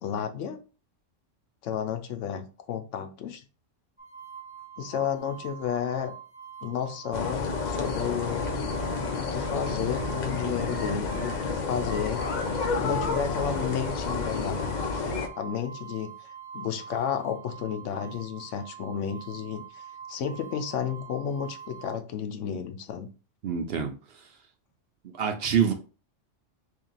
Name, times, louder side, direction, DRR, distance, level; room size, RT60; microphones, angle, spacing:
voice 1, 0.0-0.6 1.6-3.4 4.8-6.1 6.6-8.5 9.1-12.2 12.8-14.7 15.4-16.3 16.5-19.8 20.1-23.1, left 8 dB, 75° left, 0.9 m, -32 dB
sound 1, 4.0-22.0, right 8 dB, 5° right, 1.1 m, -45 dB
sound 2, 7.1-15.3, left 4 dB, 50° left, 0.6 m, -30 dB
voice 2, 23.4-23.9 25.1-25.7, right 7 dB, 60° right, 0.7 m, -25 dB
3.3 x 2.7 x 3.9 m
omnidirectional pair, 1.3 m